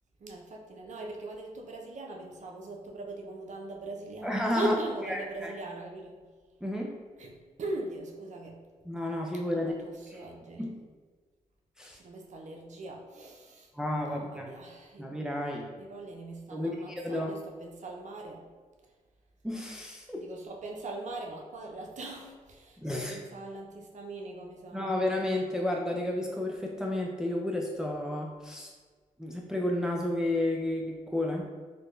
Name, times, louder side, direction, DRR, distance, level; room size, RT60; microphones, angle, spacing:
voice 1, 0.2-6.2 7.2-8.6 9.5-10.7 11.9-13.7 14.1-15.1 15.8-18.5 20.2-24.9, right 2 dB, 55° right, 0 dB, 0.6 m, -40 dB
voice 2, 4.2-4.8 5.0-5.5 6.6-7.0 8.8-9.7 10.1-10.2 10.6-10.7 11.8-12.0 13.7-14.5 15.0-15.7 16.5-17.3 19.4-20.2 22.8-23.2 24.7-28.7 29.2-31.4, left 1 dB, 5° right, -1 dB, 0.5 m, -31 dB
4.0 x 2.2 x 3.1 m, 1.4 s
supercardioid pair, 50°, 15 cm